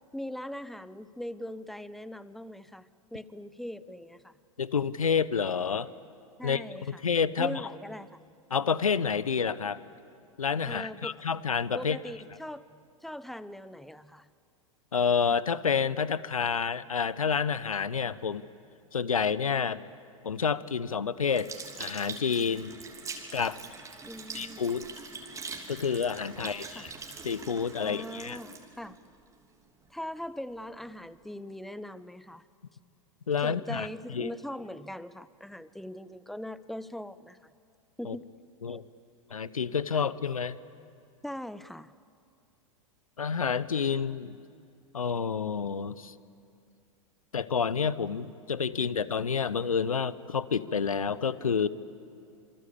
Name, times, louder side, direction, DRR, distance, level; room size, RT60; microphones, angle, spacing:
voice 1, 0.1-4.4 6.4-7.0 7.4-8.2 10.6-11.2 11.7-12.6 13.0-14.3 24.1-24.6 26.4-26.9 27.8-29.0 29.9-32.4 33.4-37.5 38.0-38.2 38.7-38.8 39.9-40.0 41.2-41.9, left 1 dB, ahead, 16 dB, 0.7 m, -41 dB
voice 2, 4.6-5.9 6.4-7.7 8.5-9.8 10.4-12.0 14.9-18.4 18.9-19.8 20.2-21.5 21.8-22.7 23.3-23.6 24.3-24.9 25.7-26.9 27.2-28.4 33.3-33.9 34.1-34.3 38.0-38.2 38.6-38.8 39.3-40.6 43.2-44.4 44.9-46.1 47.3-51.7, left 6 dB, 85° left, 18 dB, 0.8 m, -29 dB
Sink (filling or washing) / Liquid, 21.3-29.9 30.5-30.6, right 4 dB, 20° right, 3.1 m, -43 dB
26.5 x 24.0 x 8.5 m, 2.5 s
figure-of-eight pair, 95°, 17 cm